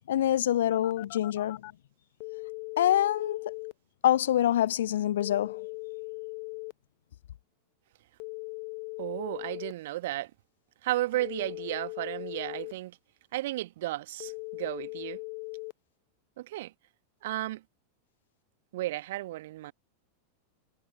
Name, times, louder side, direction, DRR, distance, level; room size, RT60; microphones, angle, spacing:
voice 1, 0.1-1.6 2.8-3.4 4.0-5.7, left 12 dB, 60° left, 0.3 m, -25 dB
Telephone, 0.7-1.7 2.2-3.7 5.2-6.7 8.2-9.7 11.2-12.7 14.2-15.7, left 36 dB, 45° left, 0.9 m, -39 dB
voice 2, 9.0-10.3 10.8-13.0 13.3-15.2 16.4-16.7 17.2-17.6 18.7-19.7, right 16 dB, 55° right, 1.4 m, -33 dB
figure-of-eight pair, 90°, 0 cm